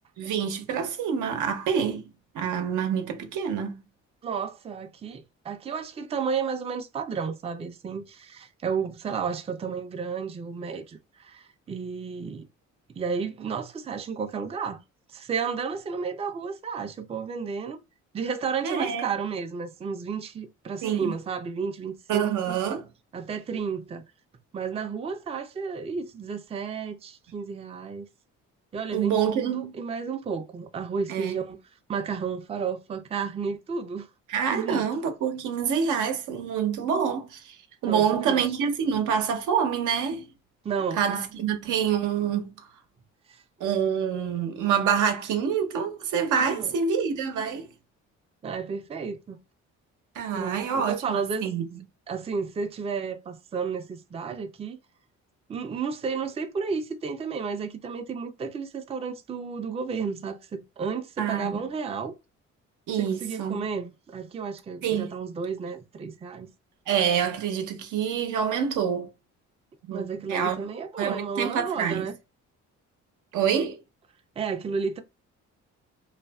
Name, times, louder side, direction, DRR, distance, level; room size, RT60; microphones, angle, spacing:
voice 1, 0.2-2.1 2.3-3.8 18.6-19.0 20.8-21.1 22.1-22.9 28.9-29.7 31.1-31.4 34.3-37.6 37.8-40.3 41.0-42.5 43.6-47.7 50.1-51.8 61.2-61.6 62.9-63.6 64.8-65.1 66.9-69.1 69.9-70.7 71.0-72.1 73.3-73.8, right 7 dB, 85° right, 0.7 m, -26 dB
voice 2, 4.2-12.5 13.0-14.8 15.1-17.8 18.1-22.6 23.1-24.0 24.5-28.1 28.7-31.6 31.9-34.1 34.5-34.9 37.8-38.4 40.6-41.4 46.4-46.7 48.4-49.4 50.3-51.4 52.1-54.8 55.5-62.1 63.0-66.5 69.9-72.1 74.4-75.0, right 5 dB, 20° right, 0.4 m, -32 dB
2.6 x 2.4 x 2.2 m
cardioid pair, 90°, 30 cm